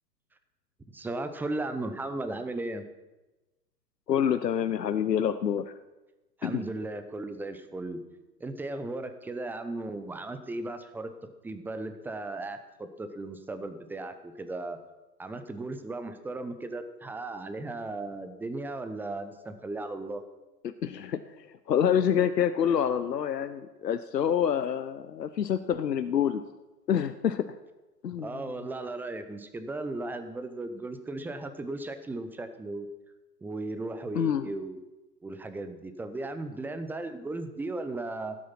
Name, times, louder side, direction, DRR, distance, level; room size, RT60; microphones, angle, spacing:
voice 1, 0.9-2.9 6.4-8.0 8.4-14.8 15.2-20.2 28.2-32.9 33.4-34.8 35.2-38.4, right 2 dB, 5° right, 9 dB, 0.7 m, -36 dB
voice 2, 4.1-5.7 6.4-6.6 20.6-26.4 26.9-27.5 28.0-28.5 34.1-34.5, left 8 dB, 80° left, 11 dB, 0.8 m, -27 dB
16.0 x 9.1 x 5.8 m, 1.1 s
figure-of-eight pair, 110°, 48 cm